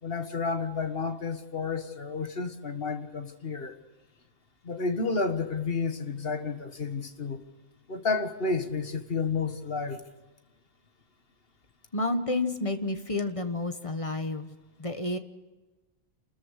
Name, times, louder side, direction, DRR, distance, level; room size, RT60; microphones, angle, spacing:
voice 1, 0.0-3.8 4.6-7.4 7.9-10.1, left 4 dB, 50° left, 8 dB, 1.6 m, -31 dB
voice 2, 11.9-14.5 14.8-15.2, left 2 dB, 30° left, 8 dB, 1.3 m, -30 dB
30.0 x 14.0 x 6.5 m, 1.2 s
omnidirectional pair, 1.3 m